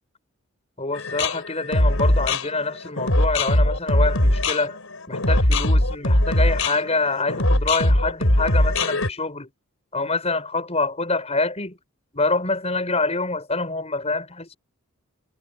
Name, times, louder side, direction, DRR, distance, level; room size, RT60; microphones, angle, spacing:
voice 1, 0.8-4.8 5.1-9.5 9.9-11.8 12.1-14.5, left 3 dB, 30° left, 6.2 m, -26 dB
sound 1, 0.9-9.1, left 1 dB, 70° left, 5.1 m, -20 dB
head